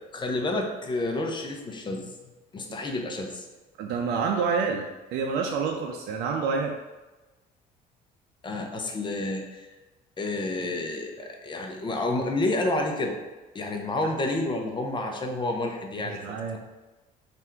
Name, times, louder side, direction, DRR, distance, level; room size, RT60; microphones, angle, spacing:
voice 1, 0.1-2.1 2.5-3.4 8.4-9.7 10.2-13.1 13.5-16.2, left 2 dB, 25° left, 2 dB, 0.7 m, -29 dB
voice 2, 3.8-4.9 5.1-6.8 16.0-16.6, right 5 dB, 80° right, 2 dB, 0.4 m, -28 dB
3.4 x 2.5 x 4.4 m, 1.1 s
cardioid pair, 110°, 17 cm